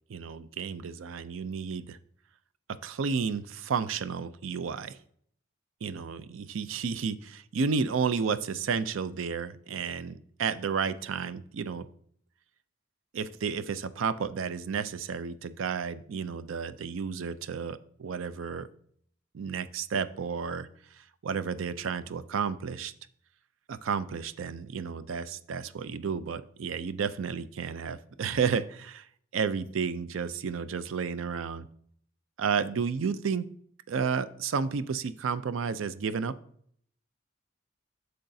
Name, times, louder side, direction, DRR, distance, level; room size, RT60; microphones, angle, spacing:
voice 1, 0.1-2.0 2.8-5.0 5.8-11.9 13.1-18.7 19.3-20.7 21.0-22.9 23.7-29.1 29.3-31.7 32.4-33.5 33.9-36.3, right 6 dB, 90° right, 14 dB, 0.4 m, -32 dB
8.6 x 6.6 x 2.7 m, 0.63 s
head